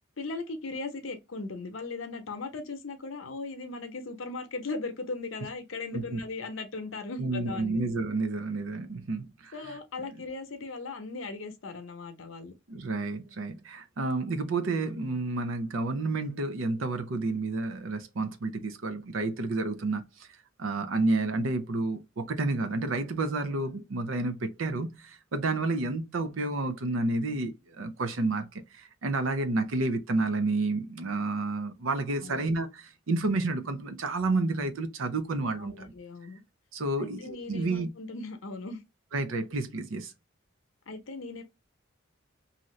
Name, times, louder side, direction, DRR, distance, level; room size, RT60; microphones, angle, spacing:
voice 1, 0.2-7.8 9.5-12.5 32.2-32.5 35.6-36.4 37.0-38.8 40.9-41.4, left 3 dB, 85° left, 0.8 m, -38 dB
voice 2, 7.2-9.5 12.7-20.0 20.6-28.5 28.8-35.9 36.7-37.9 39.1-40.1, right 2 dB, 85° right, 0.6 m, -30 dB
2.7 x 2.5 x 3.1 m
head